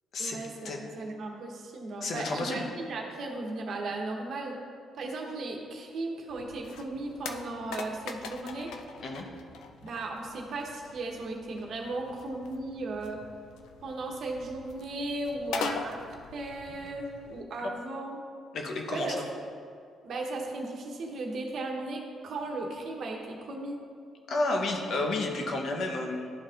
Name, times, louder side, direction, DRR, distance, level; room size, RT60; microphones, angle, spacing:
voice 1, 0.2-4.6 4.9-8.7 9.8-13.2 13.8-16.0 16.3-18.2 18.9-19.2 20.0-23.8, right 2 dB, 65° right, 1 dB, 1.0 m, -36 dB
voice 2, 2.0-2.7 9.0-9.3 17.6-17.7 18.5-19.3 24.3-26.3, left 2 dB, 60° left, 1 dB, 0.9 m, -31 dB
sound 1, 6.3-17.4, left 5 dB, 85° left, 0.4 m, -43 dB
12.0 x 4.2 x 2.5 m, 2.3 s
cardioid pair, 90°, 0 cm